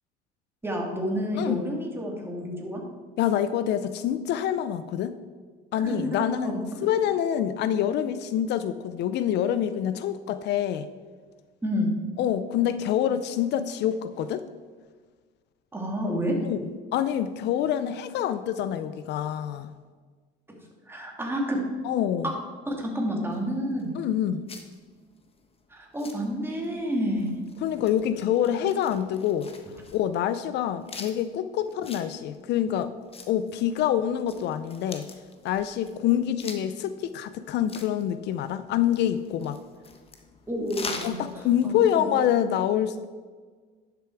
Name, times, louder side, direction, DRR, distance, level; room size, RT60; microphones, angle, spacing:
voice 1, 0.6-2.8 5.8-6.6 11.6-12.0 15.7-16.4 20.5-20.6 20.9-21.6 22.7-23.9 25.7-27.3 40.5-41.7 42.0-42.1, equal, 10° right, -1 dB, 2.7 m, -29 dB
voice 2, 3.2-5.1 5.7-10.9 12.2-14.4 16.5-16.6 16.9-19.7 21.8-22.3 24.0-24.5 27.6-29.5 29.9-32.9 33.3-35.1 35.4-39.6 41.0-43.1, left 10 dB, 65° left, 12 dB, 0.5 m, -26 dB
sound 1, 23.3-42.0, left 4 dB, 30° left, 1.3 m, -45 dB
11.0 x 6.9 x 4.7 m, 1.5 s
supercardioid pair, 95°, 20 cm